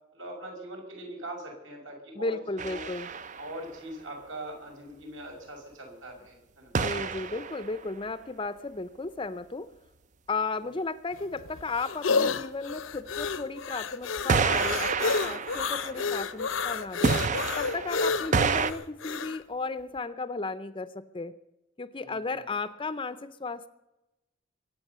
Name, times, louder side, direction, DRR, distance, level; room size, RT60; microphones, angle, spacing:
voice 1, 0.1-2.4 2.6-2.9 3.4-6.7 15.7-16.1 18.0-18.3 22.0-22.5, right 1 dB, 70° right, 1 dB, 5.8 m, -42 dB
voice 2, 2.2-3.1 6.7-9.7 10.3-17.2 17.6-21.3 21.8-23.7, left 3 dB, 25° left, 13 dB, 0.6 m, -34 dB
sound 1, 2.6-3.6 6.7-7.8 14.3-16.6 17.0-18.7, right 4 dB, 35° right, 0.6 m, -29 dB
sound 2, 11.1-19.4, left 4 dB, 75° left, 0.8 m, -30 dB
22.5 x 8.9 x 6.8 m, 0.96 s
head